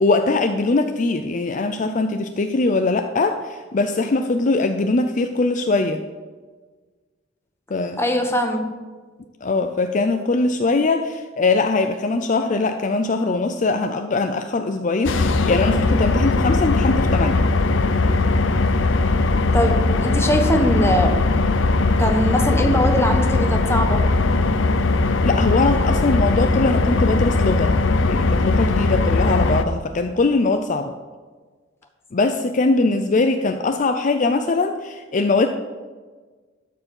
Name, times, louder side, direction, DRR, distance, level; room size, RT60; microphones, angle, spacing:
voice 1, 0.0-6.0 7.7-8.0 9.4-17.4 25.2-27.7 28.0-30.9 32.1-35.5, left 3 dB, 40° left, 7 dB, 0.5 m, -21 dB
voice 2, 8.0-8.7 19.5-21.2 22.0-24.0, equal, 15° left, 4 dB, 1.1 m, -21 dB
sound 1, 15.0-29.6, left 3 dB, 80° left, 0.6 m, -19 dB
12.5 x 4.7 x 7.0 m, 1.4 s
head